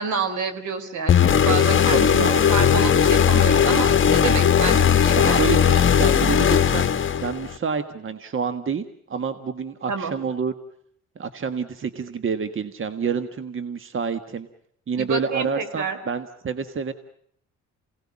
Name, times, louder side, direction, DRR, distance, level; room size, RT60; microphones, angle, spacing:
voice 1, 0.0-5.6 9.9-10.1 15.0-16.0, right 5 dB, 75° right, 9 dB, 3.9 m, -28 dB
sound 1, 1.1-7.5, left 8 dB, 40° left, 1.4 m, -18 dB
voice 2, 1.4-2.4 5.1-6.9 7.2-10.5 11.2-14.5 14.9-16.9, right 6 dB, 45° right, 10 dB, 1.5 m, -28 dB
28.5 x 18.0 x 8.5 m, 0.68 s
cardioid pair, 90°, 30 cm